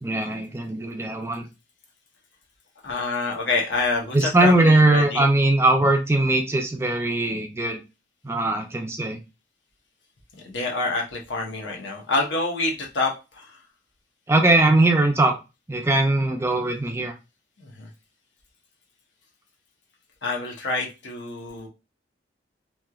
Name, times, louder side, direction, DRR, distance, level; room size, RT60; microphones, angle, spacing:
voice 1, 0.0-1.5 4.1-7.8 8.2-9.2 14.3-15.3 15.7-17.1, right 2 dB, 15° right, 4 dB, 0.4 m, -20 dB
voice 2, 2.8-5.2 10.4-13.6 17.6-17.9 20.2-21.7, left 3 dB, 85° left, 0 dB, 0.9 m, -27 dB
3.1 x 2.8 x 2.3 m, 0.28 s
head